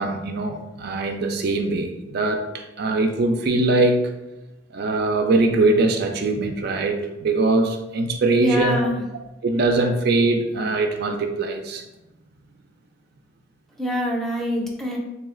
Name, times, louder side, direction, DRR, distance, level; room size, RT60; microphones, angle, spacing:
voice 1, 0.0-4.0 4.7-8.9 9.4-11.8, right 2 dB, 60° right, 5 dB, 0.4 m, -22 dB
voice 2, 8.4-9.0 13.8-15.0, equal, ahead, -1 dB, 0.6 m, -24 dB
3.3 x 3.1 x 3.7 m, 0.96 s
head